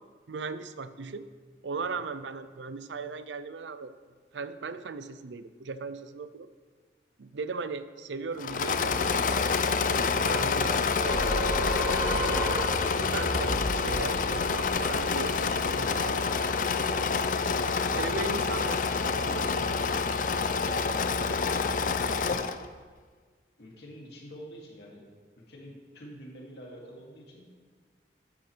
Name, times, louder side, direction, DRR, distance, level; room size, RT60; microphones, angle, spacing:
voice 1, 0.3-1.3 1.6-3.9 4.3-6.5 7.2-9.3 9.6-11.2 12.0-12.5 13.0-16.9 17.9-19.9, right 4 dB, 80° right, 12 dB, 0.5 m, -38 dB
Engine / Mechanisms, 8.4-22.6, left 5 dB, 45° left, 0.4 m, -27 dB
sound 1, 11.1-16.4, right 1 dB, 10° right, 1.2 m, -34 dB
voice 2, 20.6-21.0 21.2-21.7 22.2-22.5 23.6-25.0 25.4-27.5, equal, 65° left, -3 dB, 2.3 m, -46 dB
12.0 x 9.4 x 3.3 m, 1.5 s
head